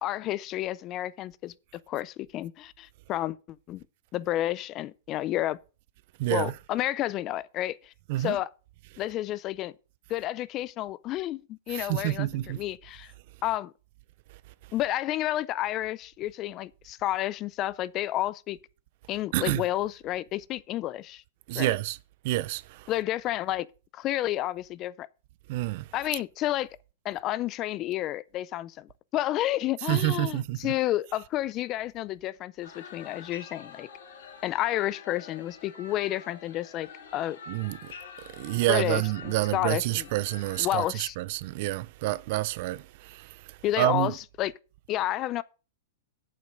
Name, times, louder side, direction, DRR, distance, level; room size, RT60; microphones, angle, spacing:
voice 1, 0.0-3.8 4.1-5.6 6.3-8.5 9.0-9.7 10.1-13.1 13.4-13.7 14.7-18.6 19.1-21.2 21.5-21.7 22.9-23.7 23.9-25.1 25.9-26.7 27.0-33.9 34.4-37.4 38.7-40.1 40.6-41.2 43.6-44.5 44.9-45.4, left 14 dB, 30° left, 0.4 m, -31 dB
voice 2, 6.2-6.5 8.1-8.4 11.7-12.6 19.3-19.6 21.5-22.0 22.2-22.6 25.5-25.8 29.9-30.6 37.5-37.8 38.4-42.8 43.1-43.2 43.8-44.1, right 17 dB, 45° right, 0.5 m, -27 dB
sound 1, 32.6-40.9, left 5 dB, 65° left, 3.7 m, -47 dB
8.7 x 7.6 x 5.2 m
hypercardioid pair, 155°, 0 cm